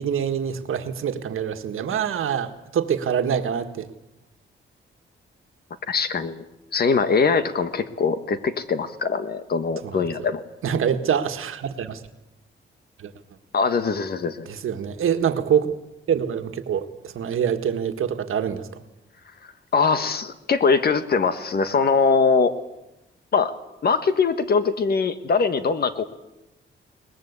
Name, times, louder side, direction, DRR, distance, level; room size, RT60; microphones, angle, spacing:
voice 1, 0.0-3.9 9.8-10.0 10.6-12.0 13.0-13.1 14.5-15.7 16.1-18.7, right 8 dB, 75° right, 7 dB, 1.7 m, -25 dB
voice 2, 5.9-6.4 6.7-10.4 13.5-14.5 19.7-22.5 23.3-23.5 23.8-26.0, left 5 dB, 50° left, 11 dB, 1.5 m, -22 dB
22.0 x 20.0 x 8.2 m, 0.93 s
wide cardioid pair, 170°, 21 cm